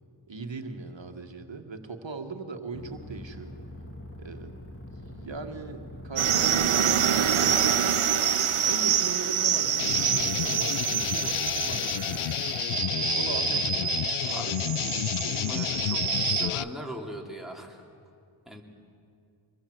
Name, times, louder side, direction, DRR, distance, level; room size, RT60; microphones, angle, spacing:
voice 1, 0.3-3.5 4.2-4.5 5.0-8.0 8.6-12.3 13.1-14.7, right 4 dB, 65° right, 6 dB, 1.8 m, -39 dB
sound 1, 2.7-7.7, left 1 dB, 25° left, 2.9 m, -43 dB
sound 2, 6.2-16.5, right 9 dB, 90° right, 0.8 m, -26 dB
sound 3, 9.8-16.6, left 11 dB, 80° left, 0.5 m, -30 dB
voice 2, 15.3-17.8 18.5-18.6, equal, ahead, 0 dB, 3.1 m, -39 dB
26.0 x 21.0 x 7.9 m, 2.4 s
wide cardioid pair, 60°, 49 cm